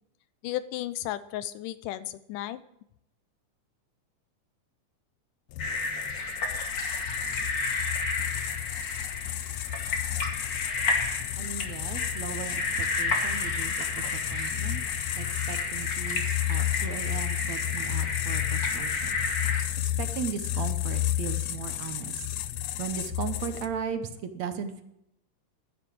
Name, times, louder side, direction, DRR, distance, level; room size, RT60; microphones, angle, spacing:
voice 1, 0.4-2.6, left 14 dB, 90° left, 15 dB, 2.3 m, -34 dB
sound 1, 5.5-23.9, left 13 dB, 75° left, 1.8 m, -32 dB
sound 2, 5.6-19.6, left 3 dB, 40° left, 2.5 m, -32 dB
voice 2, 11.4-14.8 15.1-19.2 19.7-22.3 22.8-24.8, right 7 dB, 65° right, 9 dB, 2.1 m, -37 dB
12.0 x 11.0 x 8.5 m, 0.79 s
omnidirectional pair, 3.6 m